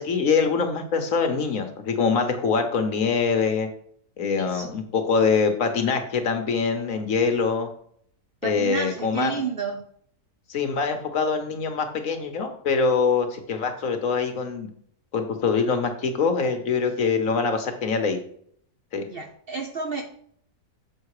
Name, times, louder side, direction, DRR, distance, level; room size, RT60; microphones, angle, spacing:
voice 1, 0.0-3.7 4.2-7.7 8.4-9.3 10.5-14.7 15.1-18.2 18.9-19.1, left 5 dB, 60° left, 6 dB, 1.4 m, -24 dB
voice 2, 4.4-4.7 8.4-9.8 19.1-20.0, right 5 dB, 50° right, 4 dB, 0.8 m, -31 dB
7.4 x 5.6 x 4.8 m, 0.64 s
omnidirectional pair, 1.6 m